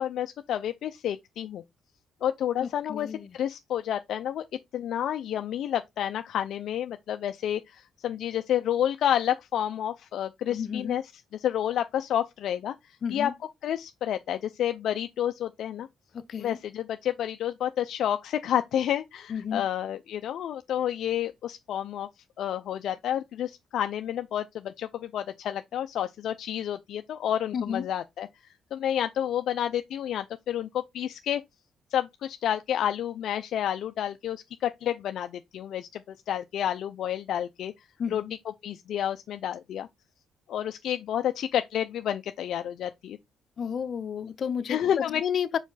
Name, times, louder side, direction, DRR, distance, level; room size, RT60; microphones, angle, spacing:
voice 1, 0.0-1.6 2.2-4.4 4.7-11.0 11.4-13.3 13.6-15.9 16.4-22.1 22.4-28.3 28.7-31.4 31.9-37.7 38.1-38.2 38.6-39.9 40.5-43.2 44.7-45.2, left 10 dB, 75° left, 0.5 m, -30 dB
voice 2, 2.6-3.4 10.5-11.0 13.0-13.3 16.1-16.6 19.3-19.6 27.5-27.9 38.0-38.3 43.6-44.8 45.2-45.6, left 7 dB, 55° left, 0.8 m, -31 dB
5.1 x 4.7 x 4.0 m
cardioid pair, 90°, 0 cm